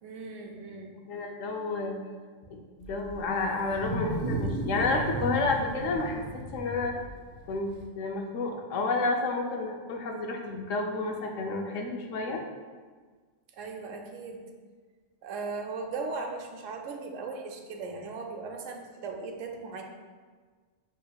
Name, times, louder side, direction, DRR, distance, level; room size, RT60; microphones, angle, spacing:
voice 1, 0.0-1.0 13.5-14.4 15.2-19.8, right 4 dB, 80° right, 3 dB, 1.0 m, -38 dB
voice 2, 1.0-2.0 2.5-6.2 6.5-7.0 7.5-12.4, left 3 dB, 80° left, 2 dB, 1.0 m, -30 dB
Wild animals, 2.8-7.8, right 1 dB, 60° right, 0.5 m, -35 dB
6.6 x 3.1 x 2.3 m, 1.5 s
omnidirectional pair, 1.3 m